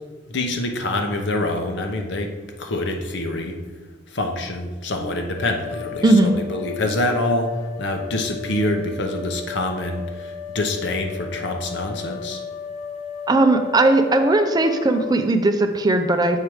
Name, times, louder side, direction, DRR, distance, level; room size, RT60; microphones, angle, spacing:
voice 1, 0.3-2.3 2.6-3.6 4.1-12.4, left 1 dB, 65° left, 4 dB, 0.9 m, -26 dB
sound 1, 5.4-15.1, left 6 dB, 35° left, 0.8 m, -35 dB
voice 2, 6.0-6.3 13.3-16.4, right 2 dB, 20° right, 6 dB, 0.5 m, -18 dB
7.4 x 4.9 x 4.8 m, 1.4 s
head